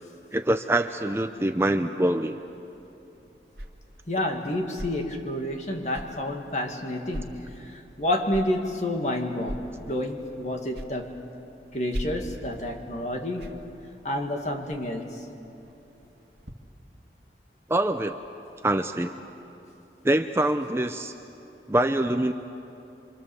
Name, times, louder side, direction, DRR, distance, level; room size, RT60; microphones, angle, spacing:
voice 1, 0.3-2.4 17.7-18.2 18.6-19.1 20.0-21.1 21.7-22.3, right 1 dB, 15° right, 7 dB, 0.5 m, -24 dB
sound 1, 2.5-16.5, equal, 75° right, 1.8 m, -43 dB
voice 2, 4.1-11.2 11.7-13.6 14.0-15.2, left 1 dB, 40° left, 3 dB, 2.1 m, -29 dB
27.0 x 25.5 x 7.1 m, 2.9 s
head